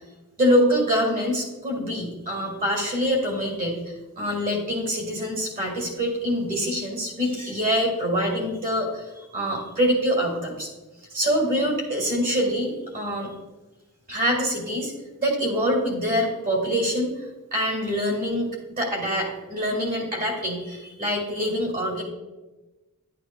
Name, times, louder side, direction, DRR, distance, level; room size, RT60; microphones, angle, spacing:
voice 1, 0.4-3.8 4.2-10.7 11.1-13.3 14.1-14.9 15.2-17.1 17.5-18.5 18.8-22.0, equal, 40° right, 0 dB, 2.3 m, -25 dB
11.5 x 8.5 x 2.3 m, 1.1 s
head